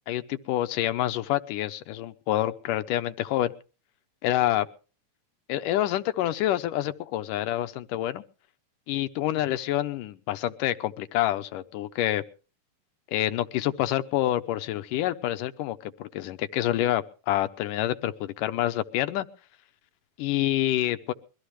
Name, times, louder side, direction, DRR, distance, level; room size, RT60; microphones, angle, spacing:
voice 1, 0.1-3.5 4.2-4.7 5.5-8.2 8.9-12.2 13.1-19.3 20.2-21.1, left 14 dB, 90° left, 9 dB, 2.6 m, -27 dB
23.0 x 15.0 x 3.3 m, 0.37 s
omnidirectional pair, 3.6 m